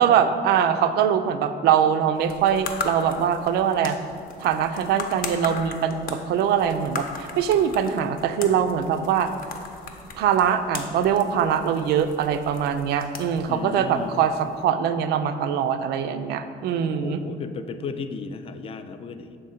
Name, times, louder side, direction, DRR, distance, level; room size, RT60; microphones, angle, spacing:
voice 1, 0.0-4.0 4.4-9.3 10.2-17.2, right 8 dB, 75° right, 10 dB, 0.4 m, -22 dB
sound 1, 2.1-14.6, left 4 dB, 60° left, 0.7 m, -38 dB
voice 2, 13.5-14.2 17.0-19.4, left 5 dB, 35° left, 9 dB, 0.4 m, -35 dB
6.4 x 3.7 x 4.2 m, 2.3 s
cardioid pair, 110°, 17 cm